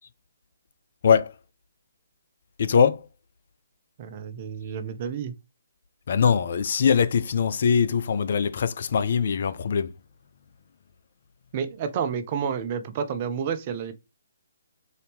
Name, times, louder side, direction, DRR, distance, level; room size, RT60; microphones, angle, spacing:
voice 1, 2.6-3.0 6.1-9.9, left 6 dB, 50° left, 0.4 m, -22 dB
voice 2, 4.0-5.3 11.5-13.9, right 7 dB, 35° right, 0.6 m, -30 dB
4.0 x 2.7 x 3.4 m
figure-of-eight pair, 135°, 0 cm